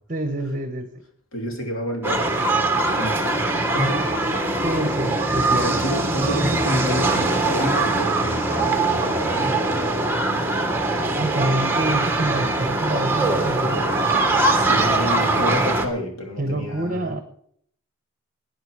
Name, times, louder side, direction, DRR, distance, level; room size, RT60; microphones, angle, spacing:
voice 1, 0.1-0.9 2.5-2.7 4.6-5.7 11.0-14.2 16.4-17.2, right 1 dB, 35° right, 7 dB, 1.0 m, -27 dB
voice 2, 1.3-4.5 5.0-5.1 5.5-9.6 14.5-17.2, equal, 75° left, 2 dB, 2.8 m, -29 dB
sound 1, 2.0-15.9, right 2 dB, 10° right, 1.3 m, -22 dB
17.0 x 10.0 x 4.8 m, 0.66 s
head